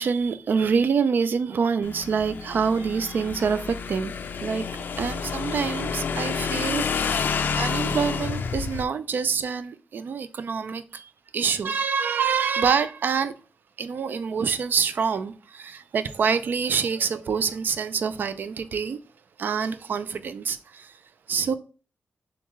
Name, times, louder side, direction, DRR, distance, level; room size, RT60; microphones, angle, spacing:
voice 1, 0.0-4.1 4.4-4.6 5.0-6.8 7.6-11.0 11.3-13.3 13.8-19.0 19.4-20.9 21.3-21.5, right 6 dB, 55° right, 0.4 m, -26 dB
Motorcycle / Engine, 1.8-8.8, left 6 dB, 55° left, 0.4 m, -29 dB
7.0 x 2.4 x 3.1 m
wide cardioid pair, 170°, 4 cm